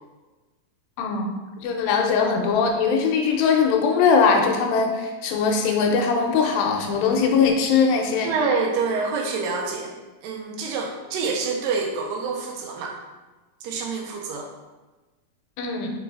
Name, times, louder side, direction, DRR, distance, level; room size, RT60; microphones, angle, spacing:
voice 1, 1.0-1.3 1.6-8.3 15.6-15.9, left 5 dB, 85° left, 2 dB, 2.3 m, -21 dB
voice 2, 8.2-13.0 13.6-14.5, right 4 dB, 80° right, 1 dB, 2.0 m, -27 dB
5.0 x 3.8 x 2.4 m, 1.2 s
omnidirectional pair, 4.2 m